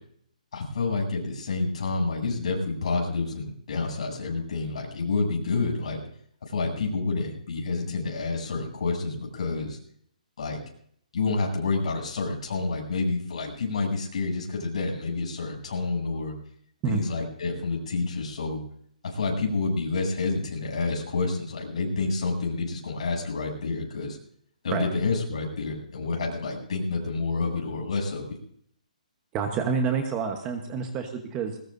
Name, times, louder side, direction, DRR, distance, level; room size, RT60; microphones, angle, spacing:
voice 1, 0.5-6.0 6.5-9.8 10.4-10.6 11.1-16.3 16.8-18.6 19.0-24.2 24.6-28.4, left 3 dB, 50° left, 0 dB, 8.0 m, -28 dB
voice 2, 29.3-31.6, right 6 dB, 15° right, 5 dB, 1.1 m, -28 dB
21.5 x 20.5 x 2.6 m, 0.64 s
hypercardioid pair, 175°, 4 cm